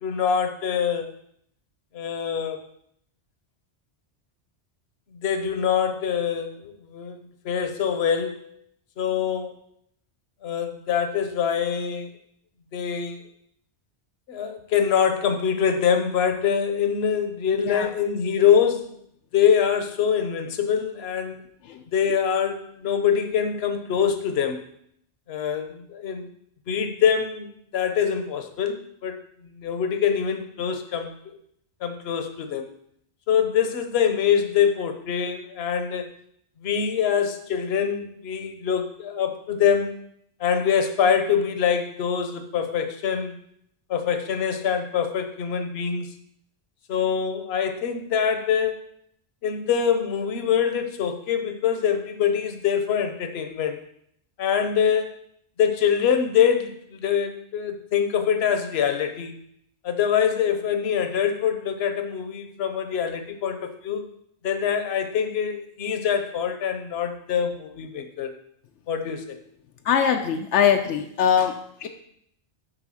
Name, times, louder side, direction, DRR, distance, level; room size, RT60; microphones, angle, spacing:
voice 1, 0.0-1.1 1.9-2.6 5.1-8.6 9.0-9.6 10.4-12.1 12.7-13.2 14.3-19.0 19.3-21.4 21.9-24.6 25.3-26.3 26.7-29.2 29.4-31.4 31.8-32.7 33.3-36.1 36.6-39.9 40.4-43.4 43.9-46.1 46.9-48.8 49.4-53.8 54.4-55.2 55.6-59.4 59.8-64.1 64.4-68.3 68.9-69.4, left 7 dB, 65° left, 7 dB, 1.0 m, -24 dB
voice 2, 69.9-71.9, left 8 dB, 85° left, 6 dB, 0.9 m, -22 dB
9.0 x 3.5 x 6.2 m, 0.70 s
omnidirectional pair, 1.2 m